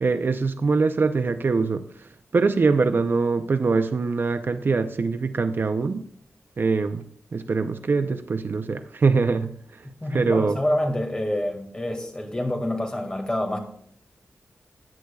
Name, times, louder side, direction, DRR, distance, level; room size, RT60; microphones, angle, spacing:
voice 1, 0.0-1.8 2.3-6.0 6.6-7.0 7.3-9.5 10.1-10.6, right 4 dB, 45° right, 9 dB, 0.5 m, -23 dB
voice 2, 10.0-13.6, left 1 dB, 20° left, 3 dB, 1.9 m, -27 dB
16.5 x 9.6 x 2.3 m, 0.64 s
wide cardioid pair, 140°, 5 cm